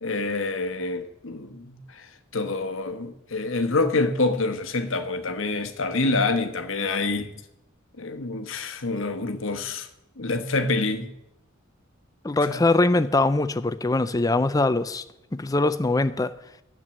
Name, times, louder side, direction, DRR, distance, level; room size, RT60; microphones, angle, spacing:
voice 1, 0.0-7.3 8.0-9.9 10.2-11.1 12.5-12.6, left 3 dB, 70° left, 1.1 m, -27 dB
voice 2, 12.2-15.0 15.3-16.3, left 2 dB, 15° left, 0.4 m, -22 dB
10.5 x 8.3 x 7.5 m
head